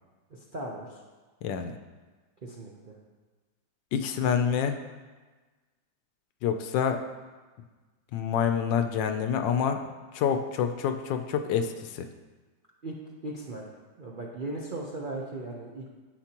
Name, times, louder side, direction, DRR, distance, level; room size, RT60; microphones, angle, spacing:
voice 1, 0.3-1.0 2.4-3.0 12.8-13.0 13.2-13.7 14.0-15.9, right 2 dB, 70° right, -3 dB, 0.4 m, -37 dB
voice 2, 1.4-1.7 3.9-4.8 6.4-7.0 8.1-9.8 10.1-12.1, left 7 dB, 75° left, 7 dB, 1.2 m, -27 dB
10.5 x 8.0 x 2.9 m, 1.3 s
omnidirectional pair, 2.2 m